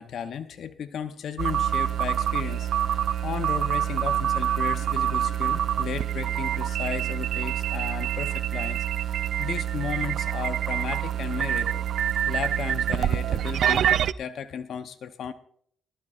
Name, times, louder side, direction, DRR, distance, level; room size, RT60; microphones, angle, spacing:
voice 1, 0.0-11.9 12.3-15.3, left 7 dB, 65° left, 9 dB, 0.7 m, -35 dB
sound 1, 1.4-14.1, right 10 dB, 65° right, 0.4 m, -26 dB
23.0 x 12.5 x 2.4 m, 0.62 s
cardioid pair, 90°, 0 cm